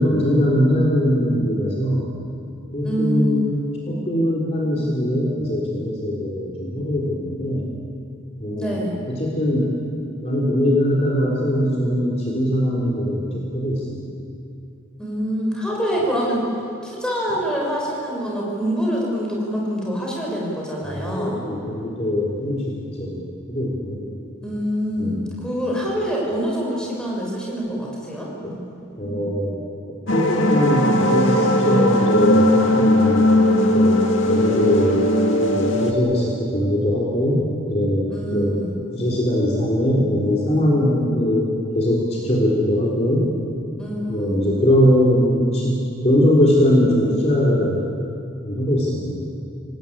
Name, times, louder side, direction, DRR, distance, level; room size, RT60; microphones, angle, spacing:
voice 1, 0.0-2.1 2.7-3.6 3.9-7.7 8.4-8.8 9.1-9.7 10.2-14.0 20.8-24.1 25.0-25.3 28.4-28.5 29.0-29.6 30.1-33.3 33.7-35.0 35.5-38.5 38.9-43.3 44.1-47.8 48.5-49.3, equal, 30° left, -4 dB, 3.7 m, -21 dB
voice 2, 2.8-3.4 8.6-9.0 15.0-16.5 16.8-21.4 24.4-28.3 38.1-38.7 43.8-44.4, equal, 5° left, -3 dB, 5.7 m, -25 dB
sound 1, 30.1-35.9, left 1 dB, 70° left, 2.3 m, -18 dB
27.0 x 19.0 x 8.8 m, 2.5 s
head